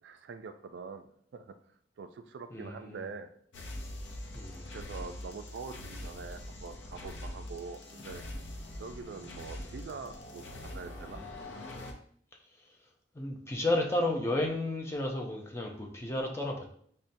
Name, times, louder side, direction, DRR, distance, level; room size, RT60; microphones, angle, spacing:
voice 1, 0.0-1.0 1.3-1.6 2.0-3.3 4.7-8.2 8.8-11.2, right 5 dB, 70° right, 8 dB, 0.3 m, -44 dB
voice 2, 2.5-3.0 4.3-4.6 13.1-16.7, left 1 dB, 15° left, 0 dB, 0.5 m, -32 dB
sound 1, 3.5-11.9, left 1 dB, 80° left, 0.6 m, -43 dB
5.4 x 2.1 x 2.6 m, 0.62 s
head